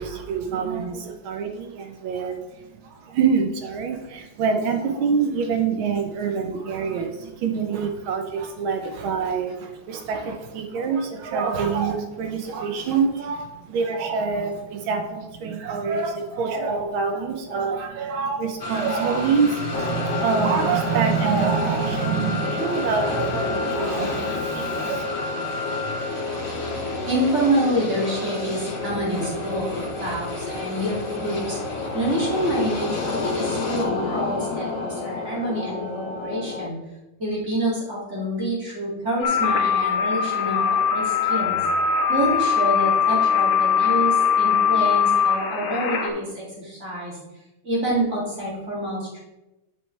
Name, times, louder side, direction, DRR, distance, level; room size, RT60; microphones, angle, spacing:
voice 1, 0.0-25.0, right 5 dB, 80° right, 5 dB, 1.6 m, -26 dB
sound 1, 18.6-33.8, left 2 dB, 30° left, 1.3 m, -32 dB
sound 2, 19.7-36.7, left 4 dB, 55° left, 0.9 m, -31 dB
voice 2, 27.1-36.8 37.2-41.6 42.1-47.1 47.6-49.2, right 1 dB, 35° right, -5 dB, 2.8 m, -27 dB
sound 3, 39.2-46.1, left 7 dB, 85° left, 1.8 m, -21 dB
7.8 x 7.4 x 3.3 m, 0.99 s
omnidirectional pair, 2.2 m